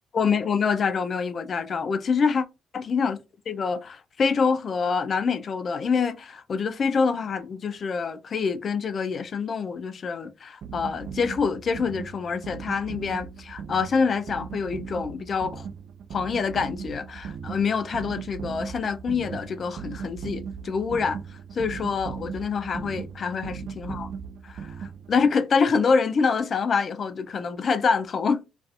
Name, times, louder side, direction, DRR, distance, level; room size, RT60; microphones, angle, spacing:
voice 1, 0.1-2.4 2.7-3.2 3.5-15.7 16.1-21.2 21.5-24.1 24.4-28.4, left 5 dB, 50° left, 0.4 m, -26 dB
sound 1, 10.6-25.3, right 7 dB, 60° right, 0.3 m, -38 dB
2.6 x 2.3 x 2.4 m
hypercardioid pair, 45°, 0 cm